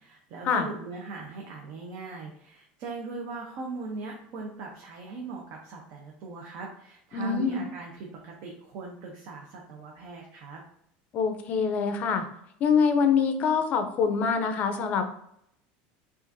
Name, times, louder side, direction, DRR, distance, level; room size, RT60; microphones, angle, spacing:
voice 1, 0.0-10.6, right 3 dB, 50° right, -1 dB, 0.7 m, -40 dB
voice 2, 7.1-7.6 11.1-12.3 12.6-15.0, left 6 dB, 35° left, 7 dB, 0.5 m, -25 dB
5.8 x 2.5 x 2.6 m, 0.72 s
cardioid pair, 155°, 4 cm